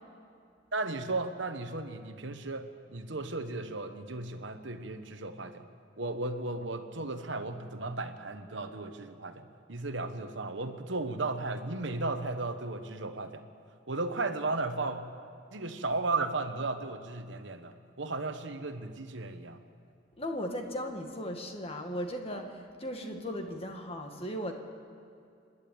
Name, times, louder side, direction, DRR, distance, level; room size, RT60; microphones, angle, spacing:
voice 1, 0.7-5.7 6.0-13.4 13.9-15.1 15.5-19.6, right 3 dB, 65° right, 8 dB, 1.2 m, -35 dB
voice 2, 20.2-24.5, equal, 30° left, 4 dB, 1.8 m, -37 dB
27.0 x 11.5 x 8.6 m, 2.5 s
head